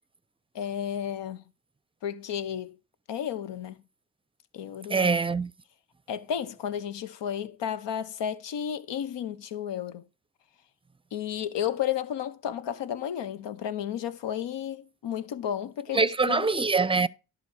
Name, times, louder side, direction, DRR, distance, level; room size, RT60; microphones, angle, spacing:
voice 1, 0.5-1.4 2.0-2.8 3.1-3.8 4.5-5.1 6.1-10.0 11.1-16.5, left 9 dB, 75° left, 1.0 m, -32 dB
voice 2, 4.9-5.5 15.9-17.1, right 4 dB, 10° right, 0.6 m, -24 dB
11.0 x 4.0 x 6.3 m
supercardioid pair, 45°, 44 cm